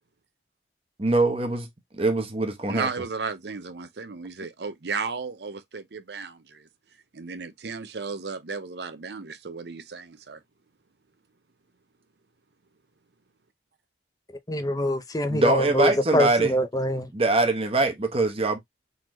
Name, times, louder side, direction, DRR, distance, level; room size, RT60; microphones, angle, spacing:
voice 1, 1.0-1.7 2.0-2.9 15.3-16.5 17.1-18.6, right 3 dB, 35° right, 0.9 m, -23 dB
voice 2, 2.7-6.7 7.1-10.4, right 5 dB, 70° right, 0.7 m, -34 dB
voice 3, 14.5-17.1, left 1 dB, 20° left, 0.6 m, -25 dB
3.9 x 3.0 x 3.0 m
head